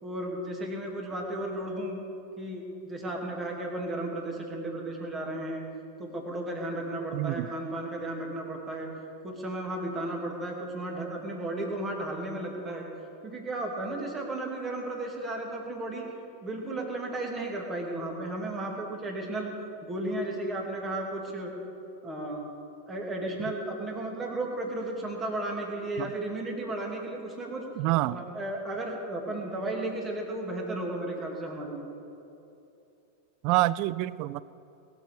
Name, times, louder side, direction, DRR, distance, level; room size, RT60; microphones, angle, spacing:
voice 1, 0.0-2.0 2.4-5.6 6.0-8.9 9.2-12.8 13.2-16.1 16.4-19.5 19.8-21.5 22.0-22.4 22.9-27.7 28.0-31.9, right 1 dB, 20° right, 1 dB, 2.8 m, -34 dB
voice 2, 7.1-7.5 26.0-26.1 27.8-28.2 33.4-34.4, right 17 dB, 45° right, 20 dB, 0.4 m, -27 dB
20.5 x 7.2 x 6.6 m, 2.8 s
figure-of-eight pair, 90°, 0 cm